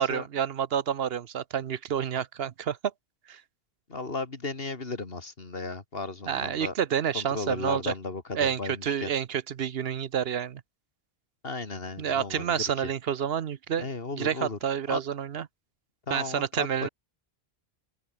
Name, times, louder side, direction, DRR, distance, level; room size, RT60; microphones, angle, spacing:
voice 1, 0.0-2.8 3.3-3.4 6.3-7.9 8.3-10.6 12.0-13.9 14.1-15.5 16.1-16.9, right 8 dB, 70° right, 1.0 m, -29 dB
voice 2, 3.9-6.7 7.1-9.1 11.4-12.9 13.8-14.6 14.9-15.0 16.1-16.9, left 3 dB, 65° left, 2.6 m, -35 dB
omnidirectional pair, 1.1 m